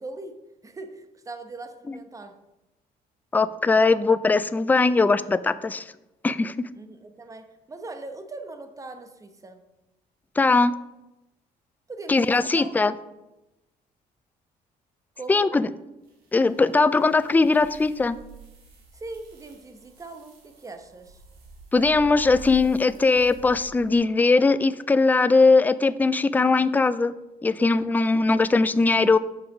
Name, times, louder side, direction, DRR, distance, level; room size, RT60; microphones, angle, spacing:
voice 1, 0.0-2.4 6.7-9.6 11.9-12.7 15.2-15.5 18.9-21.2, right 3 dB, 20° right, 8 dB, 0.9 m, -40 dB
voice 2, 3.3-5.9 6.2-6.6 10.4-10.7 12.1-12.9 15.3-15.7 16.3-18.2 21.7-27.1 27.4-29.2, left 3 dB, 10° left, 14 dB, 0.3 m, -20 dB
sound 1, 16.1-24.0, right 5 dB, 65° right, 2.5 m, -47 dB
7.3 x 5.8 x 5.0 m, 0.95 s
cardioid pair, 110°, 17 cm